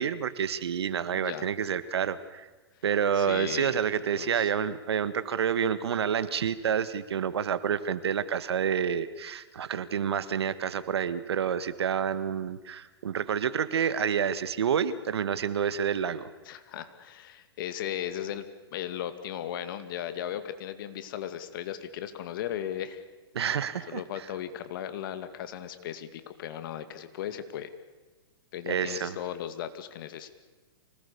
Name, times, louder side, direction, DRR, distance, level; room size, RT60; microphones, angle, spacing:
voice 1, 0.0-2.5 2.8-16.3 23.3-24.0 28.7-29.1, right 8 dB, 75° right, 14 dB, 1.6 m, -28 dB
voice 2, 1.1-1.5 3.1-3.8 4.1-4.5 16.5-23.0 23.4-27.7 28.5-30.3, left 10 dB, 55° left, 10 dB, 2.2 m, -37 dB
25.5 x 19.5 x 6.9 m, 1.3 s
hypercardioid pair, 125°, 14 cm